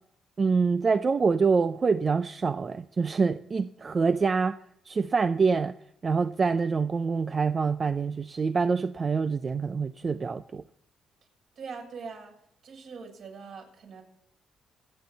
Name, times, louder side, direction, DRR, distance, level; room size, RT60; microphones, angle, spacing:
voice 1, 0.4-4.6 4.9-5.7 6.0-10.6, right 5 dB, 35° right, 0.6 m, -25 dB
voice 2, 11.6-12.3 12.6-14.0, right 5 dB, 70° right, 6.9 m, -42 dB
26.5 x 9.5 x 4.1 m
cardioid pair, 90°, 0 cm